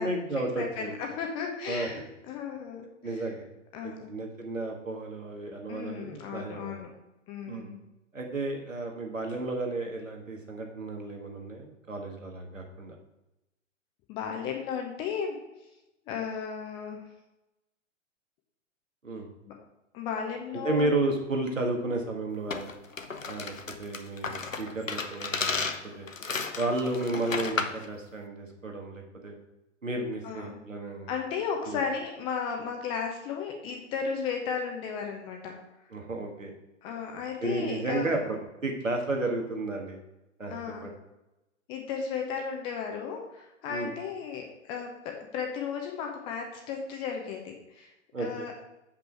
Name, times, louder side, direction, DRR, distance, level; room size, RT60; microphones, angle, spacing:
voice 1, 0.0-1.0 1.7-1.9 3.0-3.4 3.8-6.8 7.5-7.7 8.1-13.0 19.0-19.3 20.6-22.7 23.3-23.5 23.8-25.7 26.0-26.1 26.6-29.4 29.8-31.1 31.6-31.8 35.9-36.5 37.4-38.4 38.6-40.0 40.4-40.6 40.8-40.9 43.7-43.9 48.1-48.5, right 2 dB, 80° right, 2 dB, 1.8 m, -32 dB
voice 2, 0.6-3.2 3.7-4.3 5.7-6.9 7.3-7.8 14.1-15.4 16.1-17.0 19.5-19.6 19.9-21.0 30.2-30.6 31.1-35.5 36.8-38.1 40.5-40.9 41.7-47.9 48.2-48.5, left 6 dB, 15° left, 2 dB, 0.6 m, -35 dB
sound 1, 22.5-27.8, left 4 dB, 85° left, 0.8 m, -33 dB
7.5 x 5.5 x 4.7 m, 0.95 s
figure-of-eight pair, 115°, 38 cm